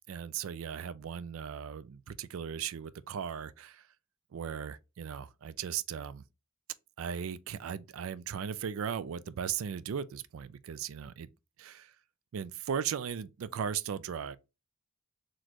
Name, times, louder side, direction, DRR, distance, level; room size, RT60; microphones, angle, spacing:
voice 1, 0.1-3.8 4.3-6.2 7.0-11.3 11.6-11.9 12.3-14.4, right 8 dB, 70° right, 0.4 m, -37 dB
4.1 x 3.1 x 2.9 m
head